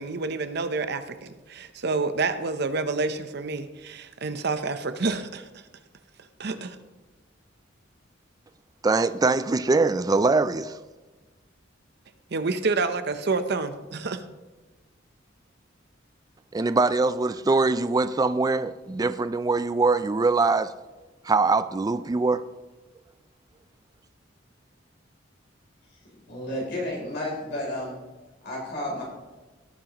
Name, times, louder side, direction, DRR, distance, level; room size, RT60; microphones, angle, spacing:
voice 1, 0.0-5.6 6.4-6.8 12.3-14.2, right 3 dB, 60° right, 0.8 m, -28 dB
voice 2, 8.8-10.8 16.5-20.7 21.2-22.5, right 3 dB, 20° right, 0.3 m, -23 dB
voice 3, 26.3-28.0 28.4-29.0, left 1 dB, 60° left, 3.6 m, -31 dB
17.5 x 8.7 x 3.0 m
head